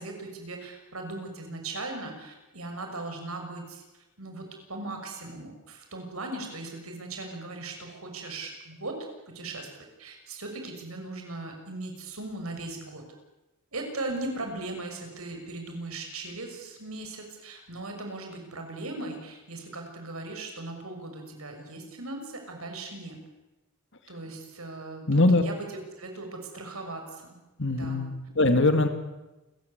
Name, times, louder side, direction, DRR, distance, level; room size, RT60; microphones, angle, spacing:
voice 1, 0.0-3.8 4.2-9.0 9.3-9.7 10.0-13.0 13.7-23.2 24.1-25.6 26.0-27.4 27.7-28.1, right 2 dB, 80° right, 4 dB, 6.4 m, -38 dB
voice 2, 25.1-25.4 27.6-28.9, left 2 dB, 60° left, 8 dB, 2.4 m, -22 dB
28.5 x 15.5 x 9.7 m, 1.0 s
head